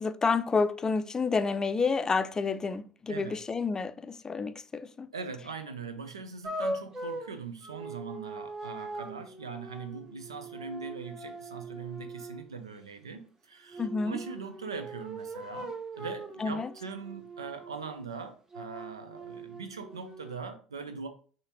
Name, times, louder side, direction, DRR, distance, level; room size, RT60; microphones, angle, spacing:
voice 1, 0.0-5.1 13.8-14.2 16.4-16.7, left 4 dB, 25° left, 0.4 m, -29 dB
voice 2, 5.1-21.1, right 5 dB, 90° right, 0.5 m, -41 dB
sound 1, 6.4-12.5 13.7-18.0 18.5-20.4, right 2 dB, 20° right, 0.8 m, -41 dB
5.6 x 2.8 x 2.9 m
hypercardioid pair, 70°, 3 cm